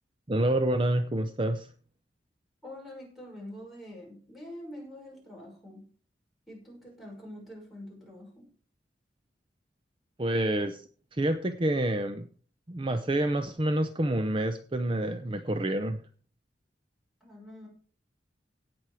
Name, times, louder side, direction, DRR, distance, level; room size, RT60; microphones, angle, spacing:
voice 1, 0.3-1.7 10.2-10.8 11.1-12.3 12.7-16.0, right 1 dB, 30° right, 9 dB, 0.6 m, -28 dB
voice 2, 2.6-5.8 6.5-8.5 17.2-17.7, left 1 dB, ahead, -3 dB, 5.8 m, -45 dB
17.5 x 6.1 x 4.9 m, 0.42 s
head